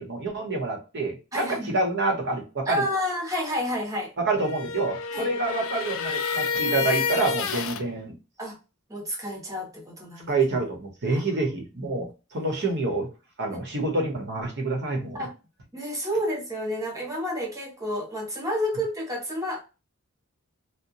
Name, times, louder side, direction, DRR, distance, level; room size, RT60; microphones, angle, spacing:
voice 1, 0.0-2.8 4.2-8.2 10.3-13.1 13.4-15.3, right 3 dB, 50° right, 0.9 m, -27 dB
voice 2, 1.3-1.8 2.7-4.1 5.1-5.3 8.4-8.6 8.9-10.4 11.1-11.2 15.2-15.3 15.7-19.6, left 1 dB, 15° right, 1.0 m, -30 dB
sound 1, 4.2-7.8, left 5 dB, 60° left, 0.4 m, -29 dB
2.9 x 2.1 x 2.5 m
head